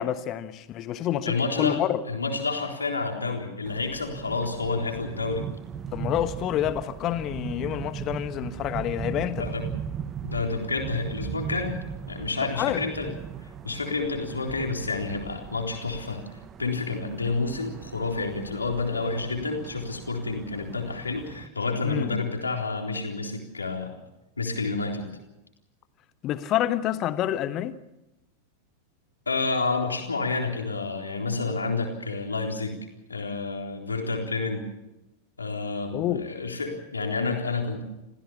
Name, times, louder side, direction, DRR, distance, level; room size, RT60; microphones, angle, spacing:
voice 1, 0.0-2.0 5.9-9.5 12.5-12.8 21.8-22.1 26.2-27.8 35.9-36.3, left 12 dB, 35° left, 1.2 m, -28 dB
voice 2, 1.3-1.8 2.1-5.4 9.4-9.6 10.2-11.8 12.1-13.1 13.6-16.2 16.6-24.0 24.4-25.1 29.3-32.8 33.1-34.7 35.4-37.8, left 3 dB, 80° left, 3.9 m, -29 dB
sound 1, 3.7-21.5, right 8 dB, 25° right, 1.1 m, -38 dB
27.5 x 16.0 x 7.1 m
figure-of-eight pair, 90°, 0 cm